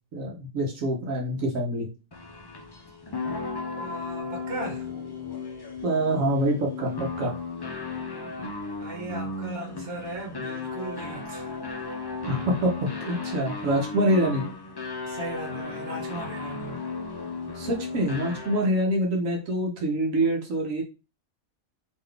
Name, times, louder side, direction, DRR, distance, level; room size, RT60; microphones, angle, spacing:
voice 1, 0.1-1.9 5.8-7.3 12.3-12.7 13.1-14.4 17.5-20.8, right 1 dB, 85° right, 1.3 m, -25 dB
sound 1, 2.1-18.8, left 4 dB, 40° left, 0.3 m, -35 dB
voice 2, 3.8-4.9 8.8-11.5 15.1-16.8, right 1 dB, 50° right, 1.6 m, -37 dB
3.8 x 3.0 x 3.3 m
omnidirectional pair, 1.3 m